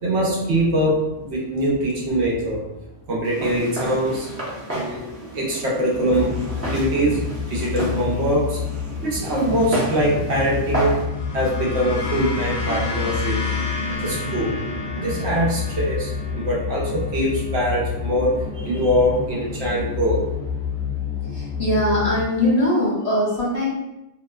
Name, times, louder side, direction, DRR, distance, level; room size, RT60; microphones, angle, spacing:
voice 1, 0.0-2.6 3.1-8.7 9.0-11.0 11.3-13.5 13.9-14.7 14.9-20.2, equal, 80° right, -4 dB, 1.0 m, -23 dB
Walk footsteps, 3.2-11.0, right 1 dB, 15° right, 0.6 m, -31 dB
sound 1, 6.1-22.2, left 7 dB, 75° left, 0.9 m, -29 dB
sound 2, 10.9-19.3, left 1 dB, 60° left, 0.3 m, -33 dB
voice 2, 21.3-23.7, left 1 dB, 40° left, -8 dB, 0.8 m, -21 dB
2.8 x 2.1 x 2.2 m, 0.91 s
omnidirectional pair, 1.1 m